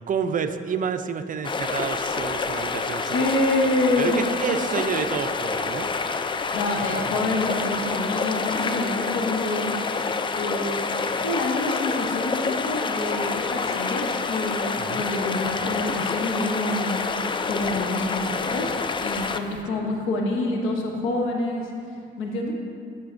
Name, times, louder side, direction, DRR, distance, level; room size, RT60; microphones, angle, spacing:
voice 1, 0.1-3.2 4.0-5.9 14.8-15.1 19.7-20.0, right 6 dB, 45° right, 9 dB, 0.4 m, -29 dB
sound 1, 1.4-19.6, left 4 dB, 25° left, 0.3 m, -27 dB
voice 2, 3.1-4.1 6.5-9.8 10.3-10.8 11.2-17.0 17.5-18.8 19.0-21.7 22.2-22.5, left 2 dB, 85° left, 1 dB, 0.9 m, -27 dB
13.0 x 5.6 x 2.6 m, 2.4 s
cardioid pair, 90°, 20 cm